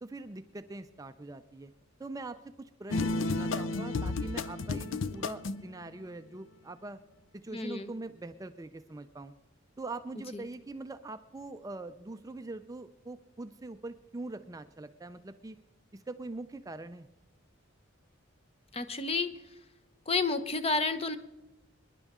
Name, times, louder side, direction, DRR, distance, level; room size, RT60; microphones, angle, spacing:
voice 1, 0.0-1.7 2.0-7.0 7.3-9.3 9.8-15.6 15.9-17.1, right 2 dB, 15° right, 10 dB, 0.4 m, -43 dB
sound 1, 2.9-5.7, left 3 dB, 70° left, 0.6 m, -32 dB
voice 2, 7.5-7.9 10.3-10.5 18.7-19.5 20.1-21.1, left 3 dB, 30° left, 11 dB, 0.7 m, -31 dB
25.0 x 10.5 x 3.6 m, 1.0 s
head